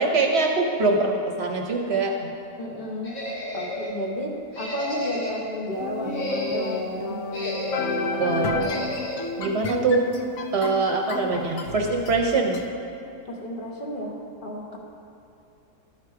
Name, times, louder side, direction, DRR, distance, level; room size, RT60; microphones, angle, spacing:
voice 1, 0.0-2.3 8.2-8.7 9.4-10.0 10.5-12.6, right 3 dB, 60° right, 1 dB, 0.9 m, -23 dB
voice 2, 2.6-7.2 13.3-14.2 14.4-14.8, equal, 45° left, -2 dB, 1.1 m, -32 dB
sound 1, 3.0-4.0 4.5-5.5 6.0-6.8 7.3-8.1 8.6-9.3, left 1 dB, 70° left, 1.7 m, -32 dB
sound 2, 5.8-12.6, left 3 dB, 90° left, 1.1 m, -31 dB
12.0 x 4.8 x 4.6 m, 2.8 s
omnidirectional pair, 1.4 m